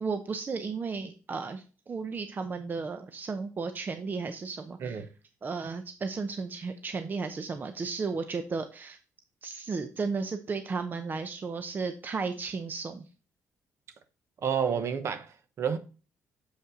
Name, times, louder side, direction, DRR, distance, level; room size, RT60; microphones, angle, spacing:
voice 1, 0.0-5.1 5.4-9.0 9.4-13.1, right 4 dB, 35° right, 0.6 m, -34 dB
voice 2, 14.4-15.8, right 7 dB, 55° right, 1.0 m, -30 dB
6.7 x 5.3 x 3.7 m
cardioid pair, 90°, 5 cm